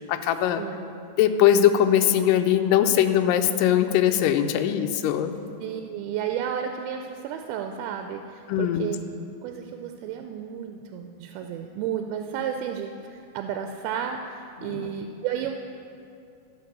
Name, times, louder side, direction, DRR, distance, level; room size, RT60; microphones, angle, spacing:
voice 1, 0.0-0.6 1.2-5.3 8.5-8.9 14.6-14.9, left 10 dB, 90° left, 7 dB, 1.9 m, -21 dB
voice 2, 0.6-1.0 5.6-9.0 9.4-15.6, right 8 dB, 85° right, 5 dB, 2.4 m, -32 dB
14.0 x 4.7 x 6.7 m, 2.5 s
omnidirectional pair, 4.4 m